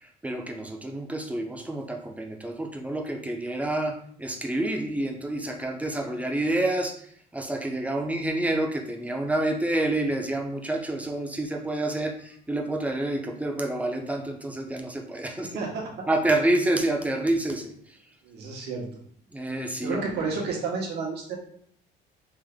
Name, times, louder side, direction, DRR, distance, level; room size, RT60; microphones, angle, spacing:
voice 1, 0.0-15.5 16.1-18.0 19.3-20.1, right 1 dB, 10° right, 3 dB, 0.6 m, -28 dB
voice 2, 15.4-16.1 18.2-18.8 19.8-21.4, right 4 dB, 80° right, -1 dB, 1.2 m, -31 dB
3.6 x 2.4 x 3.5 m, 0.63 s
cardioid pair, 110°, 17 cm